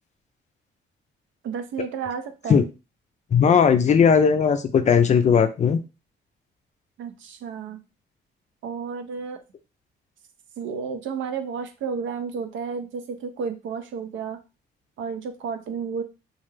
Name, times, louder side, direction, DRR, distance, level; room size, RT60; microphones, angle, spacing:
voice 1, 1.4-2.6 7.0-7.8 8.6-9.4 10.6-14.4 15.0-16.0, right 6 dB, 75° right, 7 dB, 0.5 m, -32 dB
voice 2, 3.3-5.8, left 6 dB, 35° left, 9 dB, 0.4 m, -17 dB
2.3 x 2.0 x 3.1 m, 0.29 s
cardioid pair, 90°, 20 cm